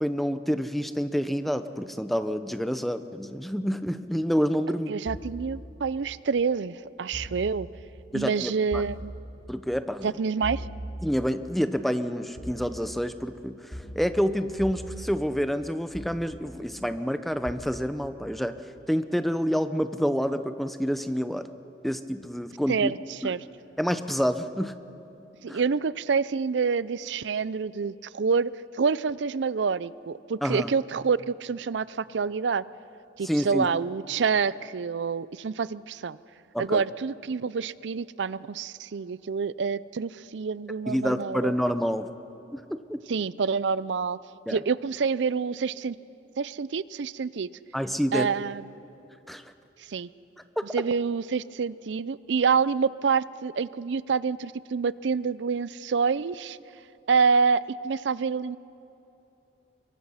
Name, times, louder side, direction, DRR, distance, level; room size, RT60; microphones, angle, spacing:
voice 1, 0.0-4.9 8.1-8.8 9.5-10.1 11.0-13.6 14.0-18.5 18.9-21.5 21.8-22.9 23.2-23.3 23.8-24.8 25.5-25.6 30.4-30.7 33.2-33.7 36.5-36.8 40.9-42.1 42.5-42.6 42.9-43.0 44.5-44.6 47.7-48.3 49.3-49.4 50.6-50.7, equal, ahead, 10 dB, 0.7 m, -28 dB
voice 2, 4.9-7.7 8.1-9.1 10.0-10.6 22.7-23.4 25.4-28.5 28.8-32.6 33.2-36.2 36.6-41.5 43.1-44.2 44.5-46.0 46.4-47.5 48.1-48.8 49.9-50.1 50.7-56.6 57.1-58.6, right 5 dB, 80° right, 18 dB, 0.5 m, -27 dB
sound 1, 5.1-5.3 7.1-7.4 8.7-9.0 10.4-10.8 12.4-12.7 13.7-14.0 14.6-14.9 15.9-16.2 17.4-17.5, equal, 25° left, 2.7 m, -38 dB
25.0 x 23.0 x 5.7 m, 2.9 s
head